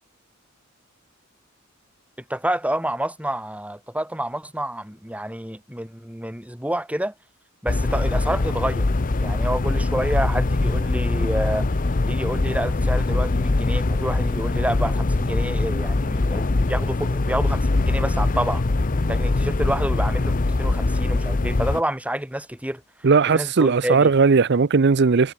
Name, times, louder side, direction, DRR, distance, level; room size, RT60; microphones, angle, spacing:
voice 1, 2.3-7.1 7.6-8.9 9.2-11.8 12.1-18.6 19.1-23.1 23.3-24.1, right 1 dB, 5° right, 7.2 m, -28 dB
sound 1, 7.7-21.8, left 2 dB, 40° left, 0.7 m, -22 dB
voice 2, 23.0-25.3, right 4 dB, 55° right, 0.6 m, -17 dB
head